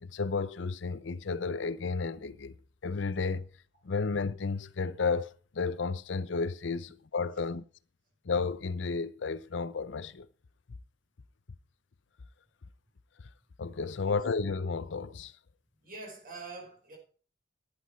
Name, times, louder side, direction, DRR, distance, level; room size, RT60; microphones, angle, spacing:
voice 1, 0.0-2.5 2.8-3.5 3.8-7.6 8.2-10.3 13.6-15.3, left 4 dB, 70° left, 0.6 m, -32 dB
voice 2, 15.8-17.0, right 3 dB, 50° right, 4.8 m, -45 dB
11.5 x 9.7 x 4.4 m
head